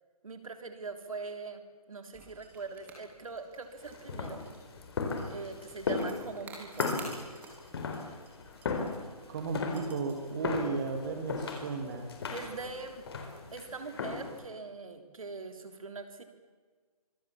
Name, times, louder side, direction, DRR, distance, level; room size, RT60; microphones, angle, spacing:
voice 1, 0.2-4.4 5.3-7.0 12.3-13.1 13.5-16.2, right 4 dB, 60° right, 6 dB, 3.3 m, -42 dB
sound 1, 2.1-13.2, right 4 dB, 10° right, 3.5 m, -53 dB
sound 2, 3.8-14.4, left 4 dB, 40° left, 4.3 m, -37 dB
voice 2, 9.3-12.1, right 4 dB, 30° right, 4 dB, 2.3 m, -35 dB
25.5 x 20.5 x 7.4 m, 1.4 s
figure-of-eight pair, 150°, 20 cm